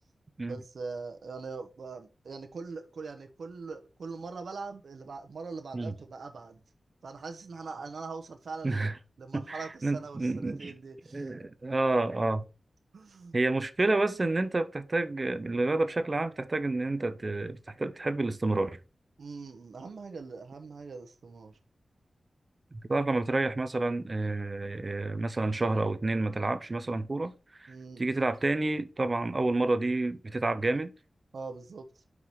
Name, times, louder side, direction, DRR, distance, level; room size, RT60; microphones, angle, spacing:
voice 1, 0.4-6.6 7.0-8.9 9.2-11.3 12.9-13.4 19.2-21.5 27.7-28.2 31.3-32.0, right 4 dB, 75° right, 0.9 m, -42 dB
voice 2, 8.6-8.9 9.3-10.7 11.1-12.4 13.3-18.8 22.9-27.3 27.6-30.9, right 2 dB, 35° right, 0.6 m, -29 dB
5.5 x 4.8 x 4.5 m
wide cardioid pair, 100°, 0 cm